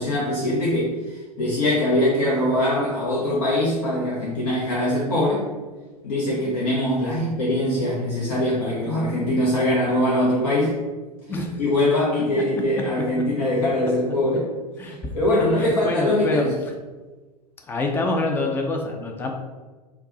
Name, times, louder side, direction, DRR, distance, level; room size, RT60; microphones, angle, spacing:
voice 1, 0.0-5.5 6.0-10.7 11.6-14.5 15.1-16.5, left 1 dB, 60° left, -6 dB, 1.0 m, -22 dB
voice 2, 11.3-11.6 14.8-16.4 17.7-19.3, left 2 dB, 10° left, 2 dB, 0.4 m, -26 dB
4.5 x 2.4 x 3.8 m, 1.3 s
figure-of-eight pair, 90°, 21 cm